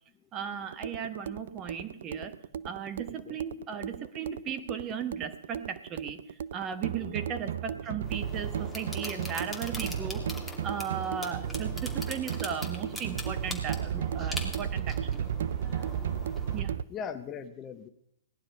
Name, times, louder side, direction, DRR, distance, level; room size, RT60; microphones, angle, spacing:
voice 1, 0.3-2.4 2.6-10.2 10.6-15.3 16.5-16.7, right 7 dB, 30° right, 8 dB, 1.4 m, -36 dB
sound 1, 0.6-16.8, right 9 dB, 65° right, 0.5 m, -34 dB
voice 2, 3.1-3.4 7.0-7.2 14.2-14.4 16.9-17.9, left 7 dB, 25° left, 10 dB, 1.0 m, -41 dB
sound 2, 8.0-16.6, left 2 dB, ahead, 2.8 m, -42 dB
18.0 x 11.0 x 5.3 m, 0.72 s
hypercardioid pair, 115°, 0 cm